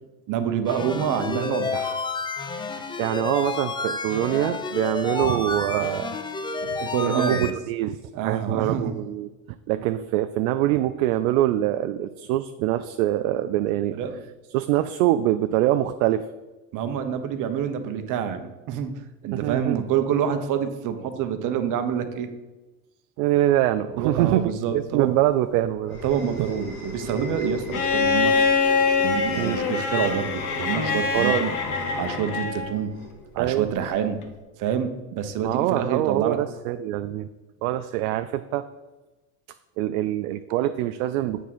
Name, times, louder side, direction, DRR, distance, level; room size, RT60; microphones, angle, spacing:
voice 1, 0.3-2.0 6.8-7.5 8.1-8.9 13.9-14.1 16.7-18.9 19.2-22.3 24.0-25.1 26.0-28.3 29.0-31.5 31.9-32.9 33.3-34.2 34.6-36.4, right 8 dB, 45° right, 8 dB, 0.9 m, -27 dB
sound 1, 0.7-7.5, left 4 dB, 10° left, 0.4 m, -30 dB
voice 2, 3.0-6.1 6.6-9.3 9.7-14.0 14.5-16.3 19.3-19.8 23.2-26.0 26.4-26.5 29.4-29.6 31.1-31.4 33.4-33.7 35.4-37.3 37.6-38.7 39.8-41.5, right 13 dB, 75° right, 9 dB, 0.5 m, -24 dB
sound 2, 25.0-33.8, equal, 85° left, 2.5 m, -37 dB
Bowed string instrument, 27.7-32.8 34.2-34.3, left 5 dB, 45° left, 1.2 m, -24 dB
8.2 x 3.7 x 6.1 m, 1.1 s
supercardioid pair, 115°, 42 cm